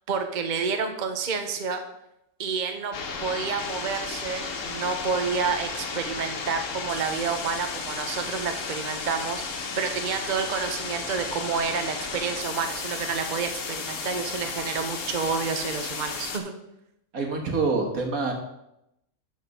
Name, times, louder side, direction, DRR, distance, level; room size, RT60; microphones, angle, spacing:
voice 1, 0.1-1.8 2.4-16.5, right 5 dB, 40° right, 6 dB, 0.8 m, -29 dB
sound 1, 2.9-16.4, left 5 dB, 65° left, 1.4 m, -34 dB
voice 2, 17.1-18.3, right 4 dB, 75° right, 2 dB, 1.9 m, -26 dB
12.0 x 4.3 x 5.3 m, 0.84 s
omnidirectional pair, 1.5 m